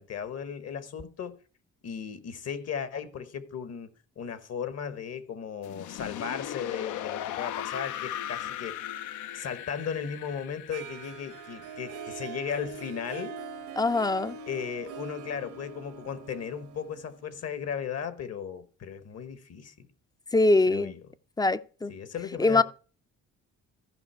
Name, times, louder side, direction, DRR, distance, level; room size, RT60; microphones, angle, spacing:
voice 1, 0.0-1.4 1.8-3.9 4.2-8.9 9.3-13.4 14.5-19.9 20.7-21.1 21.9-22.6, left 7 dB, 55° left, 1.1 m, -36 dB
sound 1, 5.6-12.5, left 11 dB, 80° left, 0.6 m, -38 dB
Harp, 10.7-17.6, right 6 dB, 85° right, 1.2 m, -43 dB
voice 2, 13.8-14.4 20.3-20.9 21.4-21.9 22.4-22.6, left 2 dB, 15° left, 0.4 m, -23 dB
14.0 x 5.4 x 4.3 m
cardioid pair, 90°, 30 cm